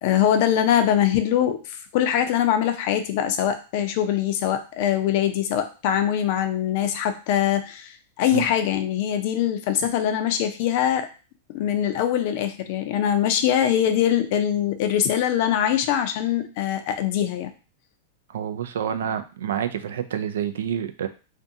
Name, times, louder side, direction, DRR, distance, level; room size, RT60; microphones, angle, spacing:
voice 1, 0.0-11.1 11.5-17.5, left 10 dB, 55° left, 8 dB, 0.4 m, -23 dB
voice 2, 18.3-21.1, right 9 dB, 80° right, 8 dB, 0.3 m, -28 dB
2.5 x 2.2 x 2.7 m, 0.33 s
hypercardioid pair, 125°, 0 cm